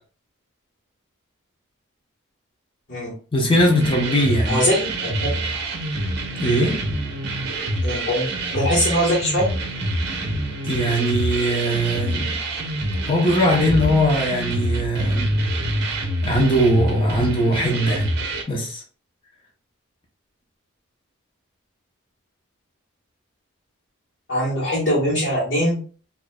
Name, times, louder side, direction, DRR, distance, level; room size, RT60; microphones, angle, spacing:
voice 1, 3.3-4.6 6.4-6.8 10.6-12.3 13.1-15.3 16.2-18.1 18.5-18.8, equal, 25° left, -1 dB, 0.8 m, -20 dB
sound 1, 3.6-18.4, right 1 dB, 55° right, 0.8 m, -26 dB
voice 2, 4.5-5.3 7.8-9.5 24.3-25.8, equal, 60° left, -8 dB, 1.4 m, -22 dB
4.5 x 2.7 x 2.3 m, 0.40 s
head